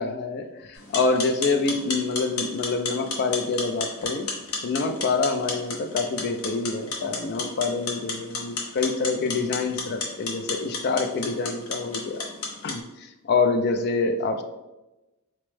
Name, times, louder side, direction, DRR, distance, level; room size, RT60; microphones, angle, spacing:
voice 1, 0.0-4.3 4.6-12.3 12.6-14.4, left 4 dB, 45° left, 7 dB, 0.3 m, -26 dB
sound 1, 0.8-12.8, left 4 dB, 75° left, 0.7 m, -33 dB
4.3 x 2.0 x 3.1 m, 1.0 s
head